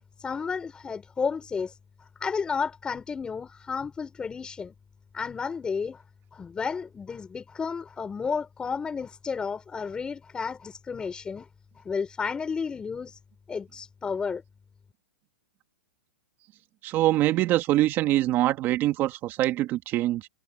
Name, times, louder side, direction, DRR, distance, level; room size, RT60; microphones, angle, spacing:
voice 1, 0.2-1.8 2.2-4.7 5.1-6.0 6.3-11.5 11.8-13.2 13.5-14.4, left 5 dB, 10° left, 6.5 m, -32 dB
voice 2, 16.8-20.3, right 15 dB, 30° right, 2.3 m, -24 dB
hypercardioid pair, 155°, 8 cm